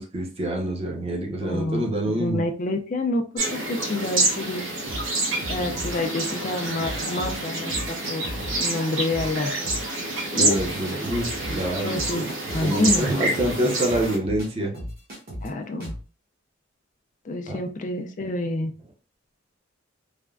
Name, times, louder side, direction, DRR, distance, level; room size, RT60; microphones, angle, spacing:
voice 1, 0.0-2.4 10.4-12.3 12.6-14.7 17.5-17.6, right 1 dB, 30° right, -1 dB, 0.7 m, -26 dB
voice 2, 1.4-3.2 3.5-4.7 5.5-7.7 8.1-9.5 10.3-10.6 11.8-12.2 12.5-13.0 15.4-15.9 17.3-18.7, left 2 dB, 40° left, 5 dB, 0.4 m, -28 dB
sound 1, 3.4-14.2, right 2 dB, 80° right, 1.0 m, -28 dB
sound 2, 4.9-6.0 6.6-7.4 7.7-8.8 9.1-9.8 10.2-10.3 10.5-14.5 14.7-15.5 15.8-16.0, equal, 50° right, 1.0 m, -36 dB
3.3 x 2.1 x 2.3 m, 0.38 s
head